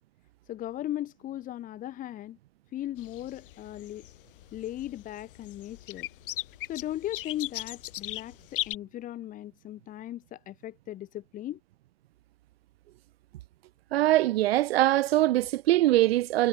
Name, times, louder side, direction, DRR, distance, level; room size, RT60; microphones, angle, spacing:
voice 1, 0.5-2.4 2.7-4.1 4.5-6.1 6.7-11.6, left 13 dB, 25° left, 3.9 m, -37 dB
sound 1, 3.0-8.7, left 16 dB, 60° left, 7.6 m, -38 dB
voice 2, 13.9-16.5, right 15 dB, 70° right, 0.5 m, -22 dB
hypercardioid pair, 140°, 31 cm